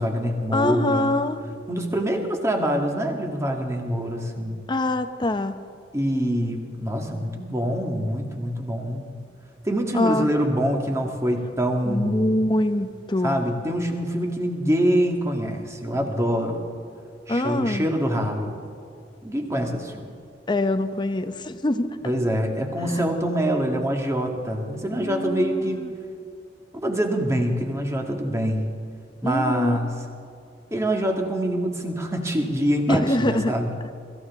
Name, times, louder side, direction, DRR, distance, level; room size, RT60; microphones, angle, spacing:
voice 1, 0.0-1.2 1.7-4.6 5.9-9.1 9.6-12.4 13.2-16.6 17.3-18.6 19.2-20.0 22.0-25.8 26.7-28.7 29.2-29.9 30.7-33.8, equal, 15° right, 2 dB, 1.8 m, -25 dB
voice 2, 0.5-1.4 4.7-5.6 9.9-10.3 11.9-13.5 17.3-17.9 20.5-21.9 22.8-23.0 24.9-25.9 29.2-29.8 32.9-33.5, left 1 dB, 25° left, 9 dB, 0.7 m, -24 dB
23.5 x 15.0 x 3.6 m, 2.5 s
head